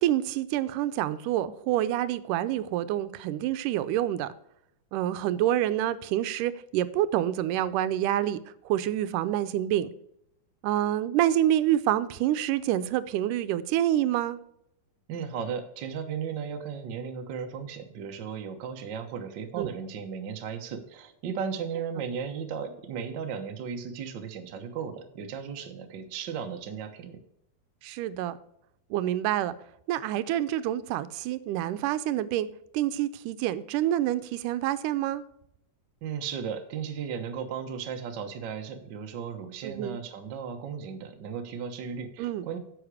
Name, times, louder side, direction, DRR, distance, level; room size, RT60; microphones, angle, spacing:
voice 1, 0.0-4.3 4.9-8.4 8.7-9.9 10.6-14.4 19.6-19.7 27.8-28.3 28.9-29.5 29.9-32.5 32.7-35.2 39.6-40.0 42.2-42.5, right 12 dB, 85° right, 2.1 m, -27 dB
voice 2, 15.1-27.2 36.0-42.6, right 7 dB, 65° right, 1.1 m, -35 dB
10.0 x 7.1 x 4.8 m
omnidirectional pair, 3.7 m